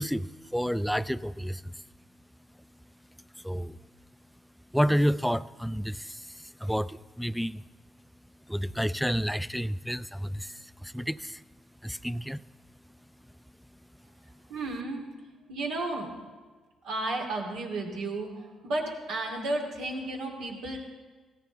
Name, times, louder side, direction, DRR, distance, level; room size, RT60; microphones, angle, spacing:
voice 1, 0.0-1.8 3.4-3.8 4.7-7.6 8.5-11.4 11.8-12.4, equal, ahead, 16 dB, 0.3 m, -30 dB
voice 2, 14.5-15.1 15.5-16.1 16.8-20.8, right 2 dB, 85° right, 0 dB, 2.6 m, -33 dB
16.5 x 14.5 x 4.0 m, 1.4 s
cardioid pair, 90°, 0 cm